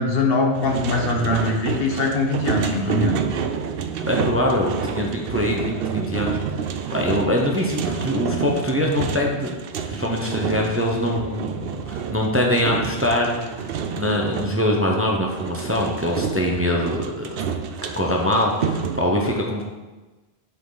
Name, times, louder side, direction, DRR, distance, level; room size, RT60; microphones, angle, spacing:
voice 1, 0.0-3.1, left 2 dB, 60° left, 1 dB, 1.3 m, -22 dB
sound 1, 0.5-14.6 15.3-19.0, right 6 dB, 65° right, 0.8 m, -29 dB
voice 2, 4.1-6.4 6.9-9.5 9.8-13.7 13.9-17.5 17.8-19.6, left 1 dB, 15° right, -1 dB, 0.8 m, -23 dB
8.2 x 6.0 x 4.0 m, 1.2 s
omnidirectional pair, 1.1 m